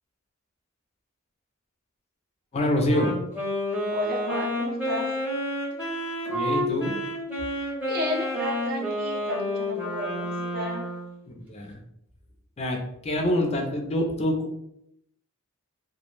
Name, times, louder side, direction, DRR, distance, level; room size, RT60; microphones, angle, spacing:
voice 1, 2.5-3.2 6.3-7.0 11.3-11.8 12.6-14.6, left 1 dB, 30° left, 2 dB, 0.4 m, -26 dB
Wind instrument woodwind instrument, 2.9-11.2, left 1 dB, 5° right, 0.7 m, -30 dB
voice 2, 3.9-5.1 7.5-10.8, equal, 45° right, 1 dB, 0.6 m, -33 dB
2.2 x 2.0 x 3.0 m, 0.77 s
head